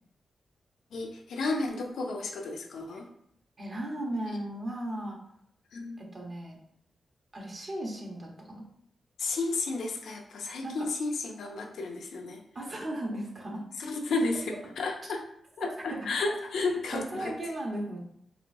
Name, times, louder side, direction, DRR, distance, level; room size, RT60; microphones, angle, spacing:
voice 1, 0.9-3.1 5.7-6.0 9.2-12.4 13.8-15.2 15.6-17.3, left 3 dB, 85° left, 2 dB, 0.5 m, -32 dB
voice 2, 3.6-5.2 6.0-6.6 7.3-8.6 10.6-10.9 12.5-13.6 15.6-16.2 16.9-18.0, right 1 dB, 50° right, 0 dB, 1.0 m, -36 dB
4.2 x 2.5 x 2.6 m, 0.68 s
cardioid pair, 60°, 0 cm